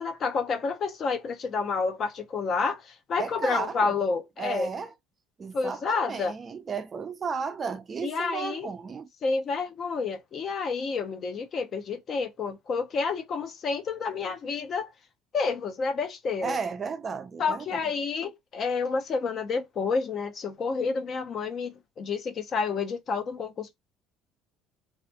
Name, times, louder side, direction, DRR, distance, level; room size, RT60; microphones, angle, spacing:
voice 1, 0.0-4.7 5.5-6.3 8.0-8.7 9.2-14.9 15.3-16.6 17.4-23.8, left 4 dB, 40° left, 0.5 m, -29 dB
voice 2, 3.2-3.9 4.4-4.9 5.4-9.1 16.4-17.8, right 5 dB, 30° right, 0.3 m, -34 dB
2.3 x 2.1 x 2.7 m
cardioid pair, 120°, 0 cm